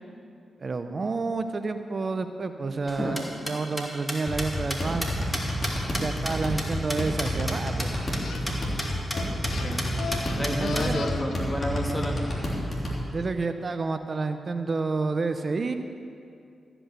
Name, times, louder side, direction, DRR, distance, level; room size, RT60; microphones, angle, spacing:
voice 1, 0.6-5.1 6.0-8.0 10.3-11.2 13.1-15.7, right 3 dB, 50° right, 8 dB, 0.6 m, -29 dB
sound 1, 2.9-7.5 7.8-7.9 8.1-8.2 8.5-8.6 8.8-9.2 9.4-9.5 9.8-10.8, equal, 10° left, 2.4 m, -32 dB
sound 2, 4.3-13.0, equal, 50° left, 3.1 m, -30 dB
sound 3, 8.2-8.4 8.8-11.3, left 5 dB, 75° left, 0.6 m, -37 dB
voice 2, 10.4-12.2, equal, 25° left, 1 dB, 2.2 m, -30 dB
14.0 x 6.0 x 8.1 m, 2.4 s
supercardioid pair, 45°, 0 cm